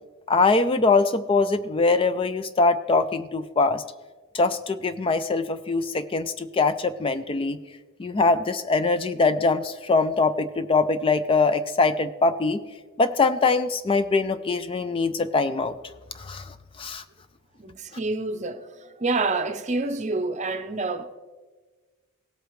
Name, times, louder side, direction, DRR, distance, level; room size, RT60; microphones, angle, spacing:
voice 1, 0.3-3.8 4.3-7.6 8.0-12.6 13.0-15.7 16.2-17.0, left 3 dB, 25° left, 0.3 m, -23 dB
voice 2, 17.6-21.2, right 3 dB, 30° right, 0.7 m, -28 dB
17.5 x 8.1 x 3.2 m
head